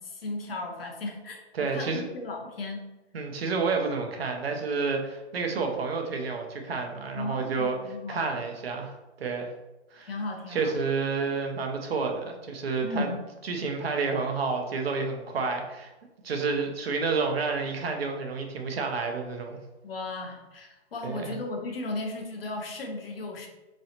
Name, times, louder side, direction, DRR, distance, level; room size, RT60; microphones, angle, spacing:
voice 1, 0.0-2.8 7.1-8.4 10.1-10.7 12.8-13.2 19.8-23.5, left 2 dB, 55° left, 2 dB, 0.8 m, -35 dB
voice 2, 1.5-2.0 3.1-9.5 9.9-10.1 10.5-13.1 13.4-15.9 16.2-19.6 21.0-21.3, right 4 dB, 60° right, 3 dB, 0.7 m, -30 dB
3.9 x 3.1 x 2.8 m, 1.1 s
hypercardioid pair, 170°, 34 cm